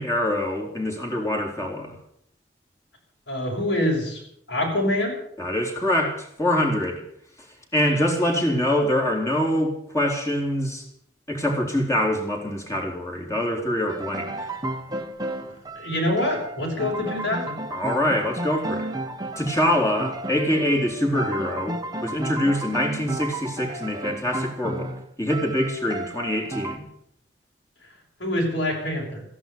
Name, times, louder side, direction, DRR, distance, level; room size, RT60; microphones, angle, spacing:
voice 1, 0.0-2.0 5.4-7.0 7.7-10.9 11.3-14.5 17.7-18.9 19.4-24.9 25.2-26.8, left 1 dB, 15° left, 1 dB, 3.4 m, -24 dB
voice 2, 3.3-4.2 4.5-5.2 15.7-17.6 28.2-29.2, left 1 dB, 75° left, -3 dB, 6.3 m, -25 dB
sound 1, 13.9-26.8, right 1 dB, 20° right, 1.2 m, -33 dB
15.0 x 11.0 x 8.5 m, 0.67 s
head